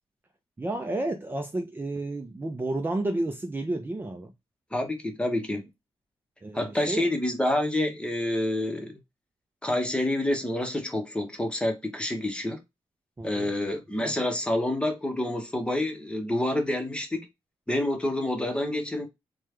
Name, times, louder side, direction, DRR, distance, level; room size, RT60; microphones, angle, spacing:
voice 1, 0.6-4.3 6.4-7.1 13.2-13.5, right 2 dB, 20° right, 0.5 m, -31 dB
voice 2, 4.7-5.7 6.5-8.9 9.6-12.6 13.2-17.2 17.7-19.1, left 1 dB, 10° left, 0.9 m, -28 dB
3.3 x 2.3 x 3.1 m
cardioid pair, 90°, 11 cm